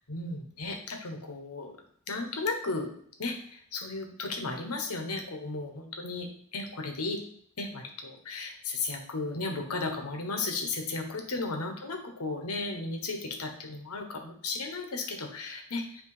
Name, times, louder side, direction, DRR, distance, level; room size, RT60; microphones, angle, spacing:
voice 1, 0.1-1.8 2.1-2.9 3.2-7.2 7.6-16.0, left 3 dB, 90° left, 4 dB, 1.2 m, -35 dB
8.6 x 3.1 x 4.9 m, 0.64 s
head